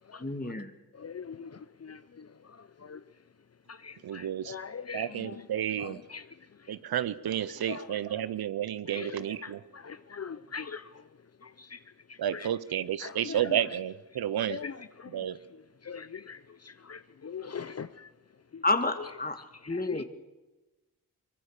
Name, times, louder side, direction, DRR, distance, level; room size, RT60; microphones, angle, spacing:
voice 1, 0.2-0.7 18.6-19.4 19.7-20.0, left 2 dB, 25° left, 2.1 m, -29 dB
voice 2, 1.0-2.3 2.8-3.0 3.7-5.4 5.8-6.3 7.7-8.0 8.9-10.9 11.4-11.8 12.3-12.5 13.0-13.6 14.5-15.3 15.8-18.1 18.5-18.6 19.6-20.0, left 6 dB, 45° left, 0.7 m, -42 dB
voice 3, 4.0-4.5 4.9-6.0 6.7-9.6 12.2-14.6 15.1-15.4, right 10 dB, 85° right, 0.7 m, -31 dB
23.0 x 20.0 x 6.6 m
cardioid pair, 45°, 36 cm